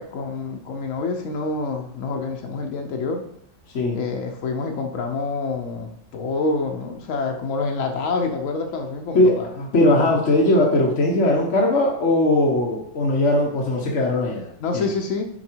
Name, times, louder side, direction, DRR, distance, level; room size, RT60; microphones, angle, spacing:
voice 1, 0.0-3.2 3.9-9.5 9.9-10.2 14.6-15.2, left 3 dB, 80° left, 3 dB, 1.1 m, -27 dB
voice 2, 9.1-14.8, left 1 dB, 65° left, -1 dB, 1.4 m, -19 dB
7.0 x 4.7 x 4.5 m, 0.70 s
omnidirectional pair, 1.3 m